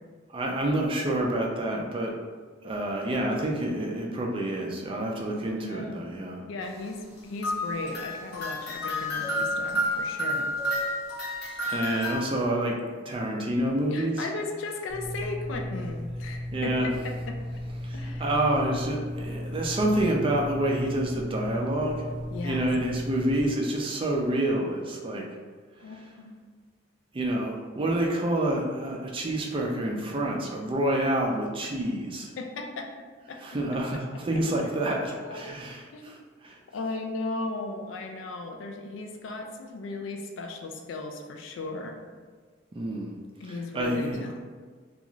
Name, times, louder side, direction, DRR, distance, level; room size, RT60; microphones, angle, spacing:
voice 1, 0.3-2.1 2.6-6.5 11.7-14.3 16.5-16.9 17.8-22.0 22.4-25.2 25.9-26.0 27.1-32.3 33.4-36.6 42.7-43.2 43.4-44.2, right 1 dB, 25° right, -1 dB, 0.4 m, -28 dB
voice 2, 5.5-6.0 6.5-7.0 7.2-10.5 13.9-16.7 17.0-17.1 17.9-18.2 22.3-22.6 25.8-26.3 32.4-32.9 33.3-33.4 35.2-35.4 35.9-36.3 36.7-42.0 43.4-44.4, left 3 dB, 70° left, 3 dB, 0.4 m, -36 dB
sound 1, 7.4-12.4, left 1 dB, 55° left, 0.7 m, -30 dB
sound 2, 14.9-23.5, left 1 dB, 85° left, 1.1 m, -35 dB
2.5 x 2.3 x 2.9 m, 1.5 s
head